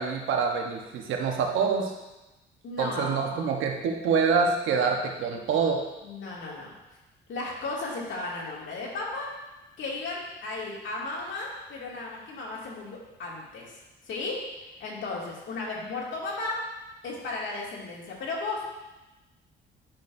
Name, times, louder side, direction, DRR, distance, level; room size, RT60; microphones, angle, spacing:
voice 1, 0.0-1.9 2.8-5.8, right 5 dB, 85° right, 2 dB, 1.0 m, -26 dB
voice 2, 2.6-3.6 6.0-6.7 7.3-9.3 9.8-13.8 14.0-14.4 14.8-16.6 17.0-18.7, left 3 dB, 70° left, -4 dB, 2.4 m, -35 dB
10.0 x 6.2 x 2.7 m, 1.0 s
cardioid pair, 90°, 20 cm